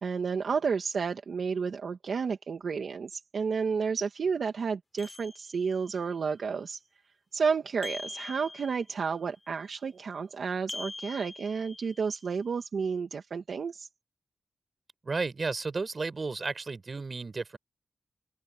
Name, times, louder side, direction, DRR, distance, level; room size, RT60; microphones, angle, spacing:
voice 1, 0.0-6.8 7.3-13.9, right 5 dB, 80° right, 1.8 m, -31 dB
sound 1, 5.0-6.0 7.8-9.1 10.7-12.2, left 3 dB, 40° left, 5.8 m, -43 dB
voice 2, 15.0-17.6, right 4 dB, 50° right, 7.3 m, -33 dB
cardioid pair, 60°, 0 cm